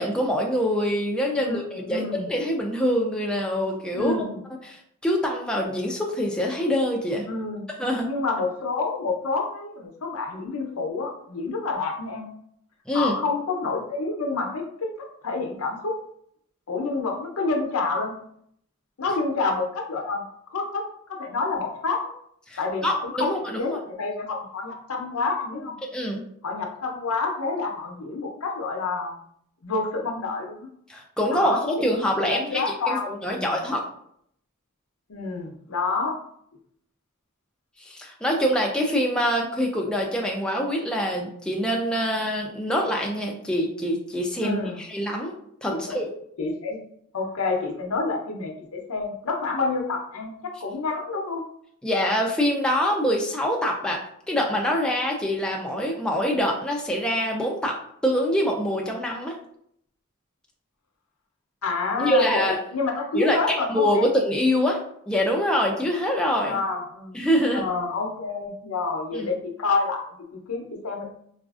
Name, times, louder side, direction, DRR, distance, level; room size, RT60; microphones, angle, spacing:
voice 1, 0.0-4.3 4.6-7.2 7.8-8.1 12.9-13.1 22.5-23.8 25.9-26.2 30.9-33.8 37.8-45.3 45.6-46.1 51.8-54.0 54.3-57.8 58.0-59.4 62.0-62.6 63.1-64.8 65.1-66.6 67.1-67.7 69.1-69.3, equal, 5° left, -1 dB, 0.3 m, -25 dB
voice 2, 1.3-2.3 3.9-4.4 7.3-7.7 8.0-12.3 12.9-16.0 16.7-18.2 19.0-20.2 20.5-20.8 21.1-22.1 22.6-23.3 23.6-25.8 26.4-29.2 29.6-30.7 31.3-31.6 32.2-33.6 35.1-36.2 44.4-44.8 45.7-46.0 46.4-46.8 47.1-51.4 61.6-64.1 66.4-67.2 67.5-71.1, left 3 dB, 80° left, 2 dB, 0.6 m, -28 dB
4.0 x 2.4 x 2.4 m, 0.68 s
head